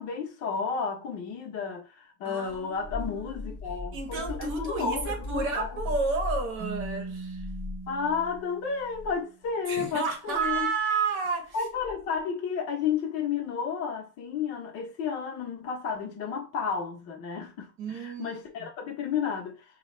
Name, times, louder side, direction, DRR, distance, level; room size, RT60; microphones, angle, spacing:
voice 1, 0.0-5.8 7.9-10.7 11.5-19.6, left 6 dB, 45° left, 1.2 m, -32 dB
voice 2, 2.2-3.5 3.9-7.5 9.7-11.5 17.8-18.7, right 4 dB, 35° right, 1.0 m, -31 dB
sound 1, 2.5-8.4 8.8-9.1 10.3-10.6 11.8-12.2, left 2 dB, 20° left, 0.9 m, -38 dB
Keyboard (musical), 6.6-9.3, right 4 dB, 20° right, 0.4 m, -40 dB
4.7 x 2.5 x 3.3 m
cardioid pair, 180°, 34 cm